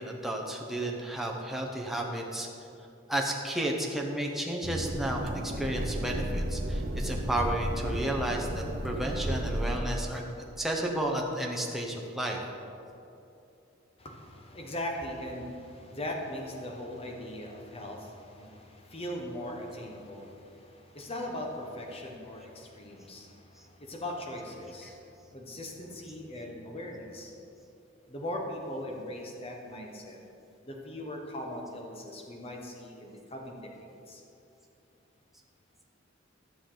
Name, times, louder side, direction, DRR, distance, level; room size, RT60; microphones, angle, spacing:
voice 1, 0.0-2.5 3.1-10.2 10.6-12.4, right 1 dB, ahead, -1 dB, 0.9 m, -32 dB
sound 1, 4.6-9.8, right 1 dB, 50° right, 0.8 m, -33 dB
voice 2, 14.0-27.3 28.1-30.2 30.6-34.2, left 1 dB, 30° left, 1 dB, 1.1 m, -40 dB
12.5 x 6.9 x 3.9 m, 2.7 s
head